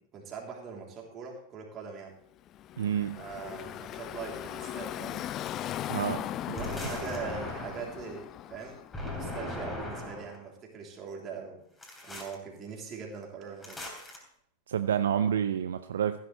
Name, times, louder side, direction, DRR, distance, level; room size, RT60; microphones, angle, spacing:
voice 1, 0.0-2.1 3.2-5.2 6.5-8.8 9.1-11.6 12.0-13.8, right 5 dB, 30° right, 0 dB, 3.4 m, -41 dB
Car passing by / Traffic noise roadway noise, 2.5-9.4, left 12 dB, 35° left, 0.4 m, -39 dB
voice 2, 2.8-3.2 5.9-6.3 14.7-16.2, right 9 dB, 65° right, 11 dB, 0.5 m, -28 dB
sound 1, 6.5-8.0 8.9-10.4 11.8-12.4 13.6-14.2, left 2 dB, 10° left, 3.3 m, -38 dB
15.0 x 11.5 x 3.3 m, 0.72 s
figure-of-eight pair, 90°, 0 cm